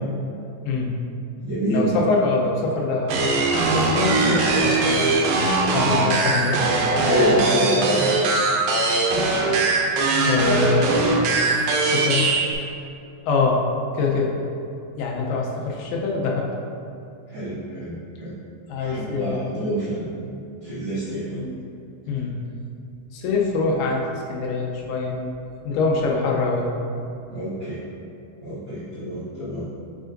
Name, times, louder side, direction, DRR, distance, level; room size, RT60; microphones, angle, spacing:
voice 1, 0.6-1.0 1.7-5.1 5.7-6.6 10.3-10.9 11.8-12.3 13.3-13.6 13.9-14.4 15.0-16.5 18.7-19.7 21.3-21.6 22.1-22.4 23.1-25.3 25.6-26.7, left 4 dB, 85° left, -1 dB, 2.8 m, -24 dB
voice 2, 1.4-1.9 7.0-8.1 17.3-18.3 18.8-20.2 20.6-21.4 27.3-27.8 28.4-29.6, right 1 dB, 55° right, -14 dB, 1.3 m, -27 dB
sound 1, 3.1-12.5, right 3 dB, 80° right, 2.4 m, -20 dB
7.5 x 5.5 x 2.6 m, 2.6 s
omnidirectional pair, 4.4 m